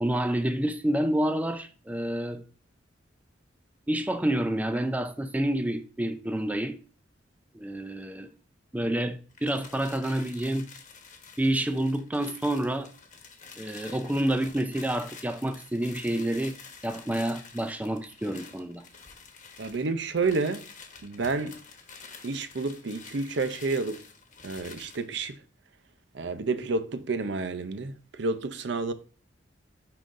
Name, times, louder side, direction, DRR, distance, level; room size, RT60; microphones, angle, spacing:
voice 1, 0.0-2.4 3.9-6.8 7.5-8.3 8.7-10.7 11.4-12.9 13.6-16.5 16.8-18.8, right 1 dB, 10° right, 0.4 m, -28 dB
sound 1, 9.3-25.1, left 5 dB, 40° left, 1.1 m, -49 dB
voice 2, 19.6-20.6 21.0-21.6 22.2-24.0 24.4-25.4 26.1-28.9, right 3 dB, 65° right, 0.6 m, -30 dB
9.9 x 3.8 x 2.5 m
head